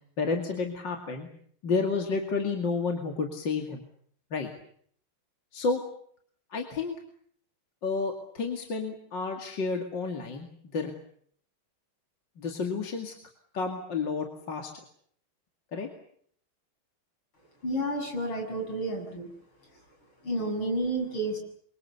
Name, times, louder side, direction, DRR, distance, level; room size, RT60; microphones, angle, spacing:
voice 1, 0.2-1.3 1.6-3.8 4.3-4.5 5.5-5.8 6.5-6.9 7.8-10.9 12.4-13.1 13.5-14.7 15.7-15.9, left 4 dB, 60° left, 3 dB, 3.1 m, -30 dB
voice 2, 17.6-19.3 20.2-21.4, right 1 dB, 80° left, 2 dB, 8.3 m, -30 dB
28.5 x 24.5 x 7.1 m, 0.62 s
omnidirectional pair, 2.2 m